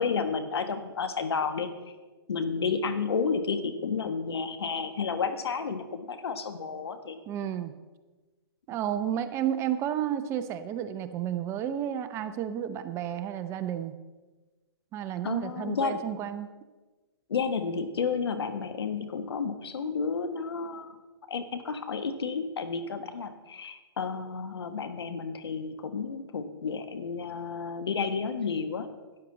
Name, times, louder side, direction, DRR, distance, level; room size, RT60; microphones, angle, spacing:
voice 1, 0.0-1.7 2.3-7.2 15.2-16.0 17.3-21.0 21.3-28.9, left 5 dB, 80° left, 9 dB, 1.3 m, -31 dB
voice 2, 7.3-7.7 8.7-13.9 14.9-16.5, right 10 dB, 20° right, 11 dB, 0.5 m, -31 dB
12.5 x 9.8 x 3.9 m, 1.3 s
hypercardioid pair, 140°, 13 cm